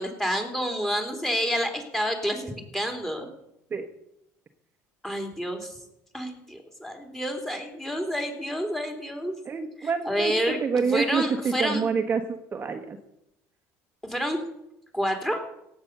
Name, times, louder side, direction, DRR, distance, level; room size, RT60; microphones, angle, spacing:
voice 1, 0.0-3.3 5.0-5.7 6.1-9.3 9.8-11.8 14.0-14.4 14.9-15.4, equal, 5° left, 5 dB, 3.2 m, -29 dB
voice 2, 9.4-12.2 12.5-13.0, right 5 dB, 30° right, 5 dB, 1.3 m, -27 dB
17.0 x 8.2 x 6.7 m, 0.84 s
cardioid pair, 105°, 6 cm